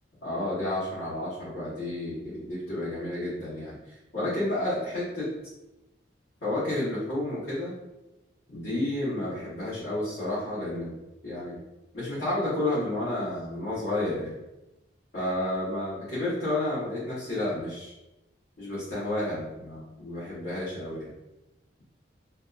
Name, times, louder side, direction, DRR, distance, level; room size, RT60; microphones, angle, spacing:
voice 1, 0.2-3.8 4.1-5.3 6.4-7.8 8.5-10.9 11.2-11.5 11.9-14.4 15.1-17.9 18.6-21.1, left 1 dB, 65° left, -13 dB, 1.1 m, -31 dB
2.7 x 2.2 x 2.3 m, 0.95 s
head